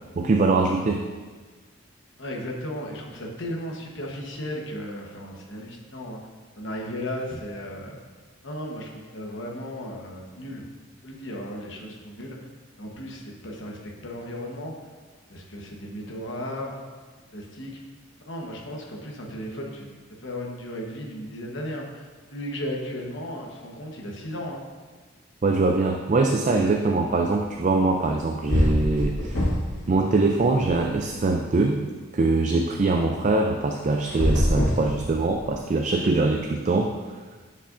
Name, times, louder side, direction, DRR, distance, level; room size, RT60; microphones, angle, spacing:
voice 1, 0.2-1.1 25.4-29.4 29.9-31.9 32.1-37.0, right 3 dB, 35° right, 2 dB, 0.3 m, -23 dB
voice 2, 2.2-6.2 6.6-8.0 8.4-10.7 11.0-12.5 12.8-14.7 15.3-16.8 17.3-17.8 18.3-24.6, equal, 55° left, 0 dB, 1.1 m, -35 dB
sound 1, 28.1-28.2 28.5-29.8 30.1-31.2 34.0-35.6, equal, 90° left, 2.2 m, -24 dB
10.0 x 5.5 x 2.5 m, 1.4 s
head